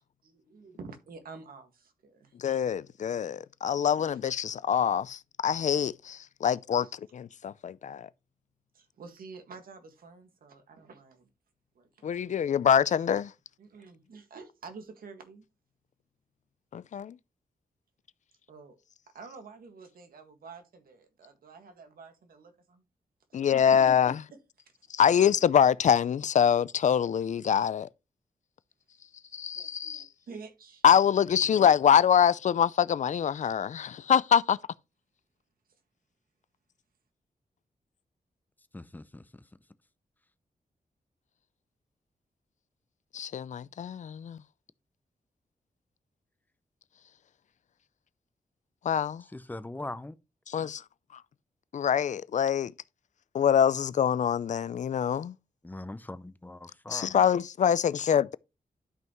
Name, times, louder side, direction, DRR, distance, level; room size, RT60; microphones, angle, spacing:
voice 1, 0.2-2.3 6.8-6.9 8.7-11.3 11.8-12.2 13.6-15.4 18.5-18.8 19.1-22.8 23.3-23.6 24.3-24.4 24.8-24.9 29.1-30.8 31.4-31.6, right 4 dB, 90° right, 1.8 m, -49 dB
voice 2, 2.4-6.8 7.4-8.1 12.0-13.3 16.7-17.2 23.3-24.2 24.9-27.9 29.3-30.0 30.8-34.6 43.1-44.4 48.8-49.2 50.5-50.8 51.7-52.7 53.3-55.3 56.9-58.4, left 8 dB, 60° left, 0.4 m, -25 dB
voice 3, 38.7-39.2 49.3-50.2 55.6-57.1, left 2 dB, 10° left, 0.6 m, -41 dB
12.0 x 5.6 x 3.0 m
wide cardioid pair, 135°, 15 cm